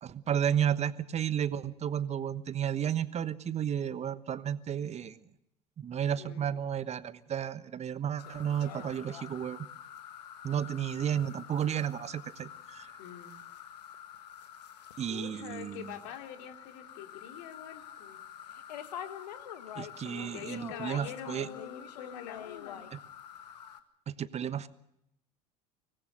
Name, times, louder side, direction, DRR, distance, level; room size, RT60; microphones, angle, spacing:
voice 1, 0.0-5.2 5.8-9.7 10.4-12.9 15.0-15.8 19.8-21.5 22.9-23.0 24.1-24.7, right 9 dB, 30° right, 15 dB, 1.2 m, -32 dB
voice 2, 6.2-6.6 13.0-13.4 15.1-18.2 20.0-22.9, left 9 dB, 60° left, 5 dB, 2.8 m, -45 dB
sound 1, 8.2-23.8, left 9 dB, 75° left, 1.7 m, -47 dB
24.5 x 19.0 x 6.8 m, 0.80 s
figure-of-eight pair, 75°, 21 cm